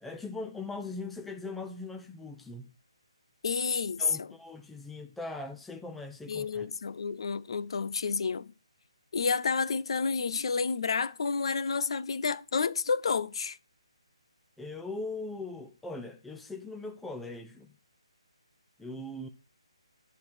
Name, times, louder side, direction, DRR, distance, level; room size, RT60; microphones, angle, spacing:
voice 1, 0.0-2.7 4.0-6.7 14.6-17.7 18.8-19.3, left 3 dB, 5° left, 0.7 m, -40 dB
voice 2, 3.4-4.3 6.3-8.5 9.1-13.6, left 5 dB, 60° left, 0.6 m, -30 dB
10.5 x 4.0 x 6.1 m
figure-of-eight pair, 150°, 3 cm